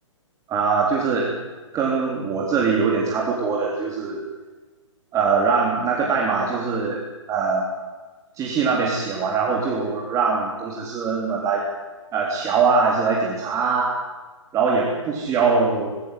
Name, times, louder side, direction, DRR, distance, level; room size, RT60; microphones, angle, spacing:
voice 1, 0.5-1.3 1.7-4.2 5.1-7.0 7.3-7.7 8.4-11.6 12.1-14.0 14.5-15.9, right 5 dB, 20° right, -2 dB, 3.8 m, -22 dB
20.5 x 18.0 x 9.6 m, 1.3 s
figure-of-eight pair, 130°, 17 cm